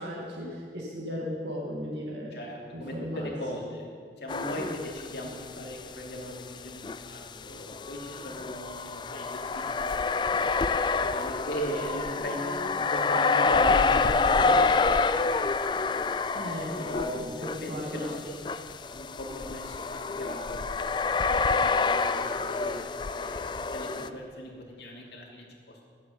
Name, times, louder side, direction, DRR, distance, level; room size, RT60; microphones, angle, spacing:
voice 1, 0.0-2.4 2.7-3.3 16.3-18.1 24.0-24.1, equal, 85° right, -3 dB, 2.2 m, -36 dB
voice 2, 2.3-3.9 4.2-15.8 16.8-17.2 17.6-18.3 18.7-21.2 21.7-24.5 24.8-25.8, equal, 75° left, -1 dB, 2.7 m, -38 dB
sound 1, 4.3-5.4 5.7-5.8 6.8-24.1, left 4 dB, 25° left, 0.3 m, -28 dB
13.0 x 7.8 x 8.7 m, 2.1 s
head